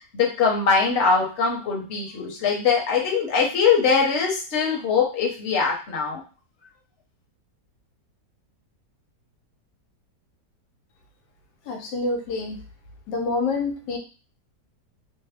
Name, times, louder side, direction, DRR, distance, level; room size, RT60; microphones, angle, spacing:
voice 1, 0.1-6.2, left 5 dB, 50° left, -1 dB, 1.0 m, -22 dB
voice 2, 11.7-12.6 13.1-14.0, left 3 dB, 90° left, 3 dB, 1.3 m, -27 dB
3.3 x 2.0 x 3.4 m, 0.36 s
omnidirectional pair, 1.8 m